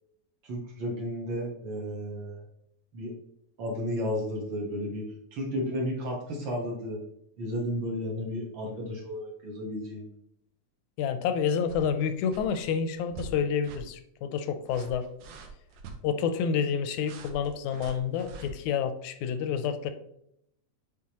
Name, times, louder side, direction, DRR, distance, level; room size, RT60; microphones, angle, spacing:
voice 1, 0.4-2.4 2.9-3.1 3.6-5.0 5.3-7.0 7.4-10.1, equal, 55° right, -1 dB, 1.4 m, -33 dB
voice 2, 11.0-15.1 16.0-19.9, left 7 dB, 80° left, 9 dB, 1.8 m, -29 dB
sound 1, 11.7-12.0 12.3-12.6 13.1-13.4 13.6-13.9 14.6-16.0 17.0-18.5, right 3 dB, 85° right, 2.4 m, -44 dB
8.5 x 4.0 x 2.9 m, 0.75 s
omnidirectional pair, 3.7 m